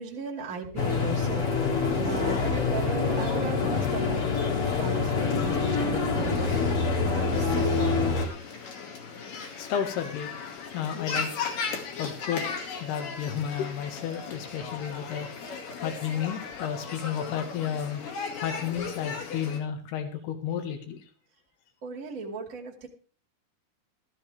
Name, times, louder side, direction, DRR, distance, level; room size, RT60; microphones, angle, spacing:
voice 1, 0.0-4.5 4.8-8.2 21.8-22.9, right 3 dB, 30° right, 1 dB, 2.0 m, -37 dB
sound 1, 0.8-8.3, left 4 dB, 40° left, 2.6 m, -26 dB
sound 2, 7.3-19.6, left 5 dB, 60° left, 3.6 m, -37 dB
voice 2, 9.6-10.3 10.7-11.3 12.0-18.0 18.4-21.0, left 8 dB, 75° left, 6 dB, 3.6 m, -32 dB
14.0 x 14.0 x 3.5 m, 0.40 s
omnidirectional pair, 4.7 m